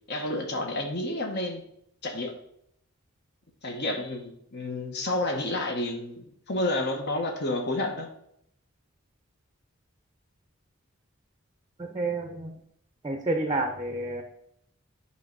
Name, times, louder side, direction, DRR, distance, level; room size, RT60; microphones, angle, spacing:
voice 1, 0.1-1.7 2.0-2.4 3.6-8.1, left 2 dB, 50° left, 3 dB, 1.2 m, -30 dB
voice 2, 11.8-12.6 13.0-14.2, right 2 dB, 20° right, 4 dB, 0.6 m, -29 dB
9.7 x 3.2 x 5.3 m, 0.72 s
head